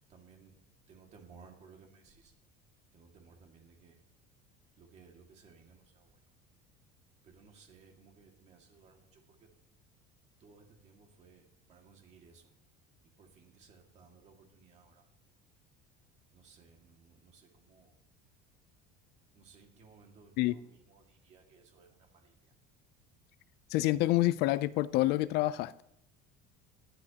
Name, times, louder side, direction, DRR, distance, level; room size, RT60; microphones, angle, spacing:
voice 1, 0.1-0.6 0.9-2.3 2.9-4.0 4.8-6.3 7.2-9.5 10.4-12.5 13.0-15.0 16.3-18.0 19.3-22.5, right 5 dB, 35° right, 2.1 m, -60 dB
voice 2, 23.7-25.8, left 17 dB, 55° left, 0.5 m, -27 dB
18.5 x 12.0 x 2.9 m
cardioid pair, 170°, 20 cm